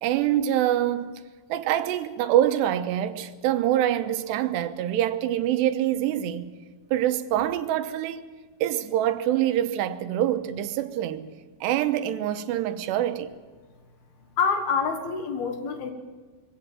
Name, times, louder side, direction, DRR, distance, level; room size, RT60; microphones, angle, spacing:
voice 1, 0.0-1.1 1.5-6.6 6.9-8.2 8.6-11.3 11.6-13.3, right 12 dB, 85° right, 3.0 m, -25 dB
voice 2, 14.4-15.9, left 5 dB, 65° left, 3.4 m, -26 dB
22.5 x 16.5 x 7.5 m
omnidirectional pair, 5.0 m